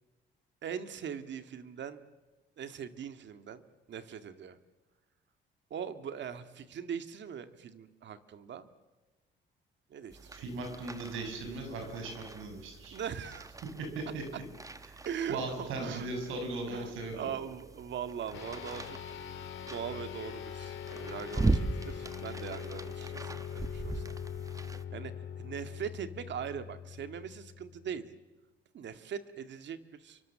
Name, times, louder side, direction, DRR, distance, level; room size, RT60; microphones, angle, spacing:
voice 1, 0.6-2.0 2.6-3.6 3.9-4.6 5.7-8.7 9.9-10.7 12.9-13.5 14.3-14.4 15.1-16.1 16.7-19.0 19.6-24.2 24.9-25.1 25.4-28.1 28.7-30.2, right 8 dB, 65° right, 9 dB, 2.0 m, -41 dB
sound 1, 10.1-24.8, right 2 dB, 15° right, 1.3 m, -39 dB
voice 2, 10.3-13.0 13.9-14.2 14.9-17.3, right 2 dB, 85° right, 5 dB, 6.7 m, -38 dB
sound 2, 18.3-28.0, left 9 dB, 75° left, 4.0 m, -42 dB
29.5 x 24.0 x 7.6 m, 1.2 s
cardioid pair, 90°, 20 cm